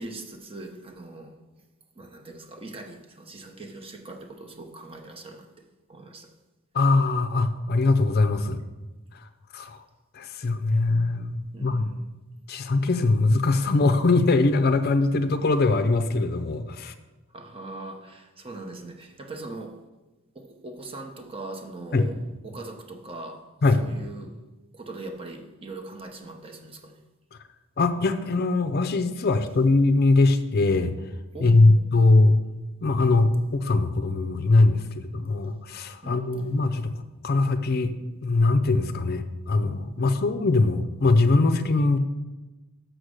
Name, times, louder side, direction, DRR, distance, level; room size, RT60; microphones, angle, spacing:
voice 1, 0.0-1.3 1.9-6.3 11.5-12.0 17.3-19.8 20.3-24.3 24.7-27.0 31.3-31.9 36.0-36.3 40.0-40.3, right 2 dB, 25° right, 3 dB, 0.9 m, -41 dB
voice 2, 6.7-8.6 9.5-9.8 10.1-11.9 12.5-16.9 21.9-22.1 23.6-23.8 27.8-30.9 31.4-32.4 32.8-36.9 37.2-37.9 38.2-42.0, left 3 dB, 50° left, 10 dB, 0.5 m, -21 dB
6.5 x 6.3 x 6.4 m, 1.1 s
head